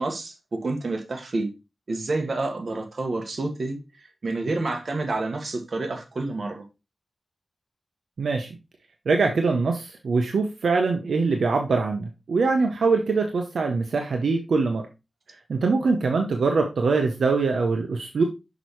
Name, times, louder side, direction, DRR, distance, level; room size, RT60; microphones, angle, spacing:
voice 1, 0.0-1.5 1.9-6.6, right 2 dB, 60° right, 1.5 m, -29 dB
voice 2, 8.2-8.5 9.1-14.8 15.5-18.2, right 4 dB, 85° right, 0.8 m, -23 dB
6.1 x 5.7 x 3.1 m
wide cardioid pair, 65°, 0 cm